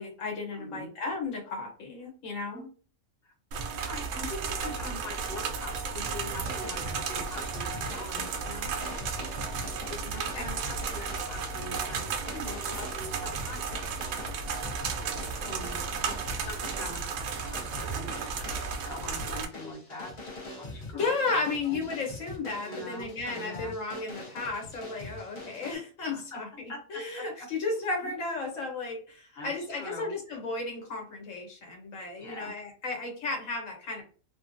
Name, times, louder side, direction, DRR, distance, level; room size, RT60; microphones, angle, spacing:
voice 1, 0.0-2.6 10.1-10.4 20.9-34.0, left 3 dB, 65° left, 0 dB, 1.4 m, -34 dB
voice 2, 0.5-0.9 2.5-2.7 3.2-3.3 3.9-8.7 9.9-13.6 15.4-21.9 22.7-23.7 26.1-26.4 26.7-26.8 27.1-27.2 28.0-28.1 29.4-30.1 32.2-32.5, left 1 dB, 45° left, -2 dB, 1.2 m, -43 dB
sound 1, 3.5-19.4, right 5 dB, 75° right, 1.0 m, -34 dB
sound 2, 6.3-25.7, left 2 dB, 30° left, 0.6 m, -44 dB
2.8 x 2.4 x 2.5 m, 0.40 s
omnidirectional pair, 1.5 m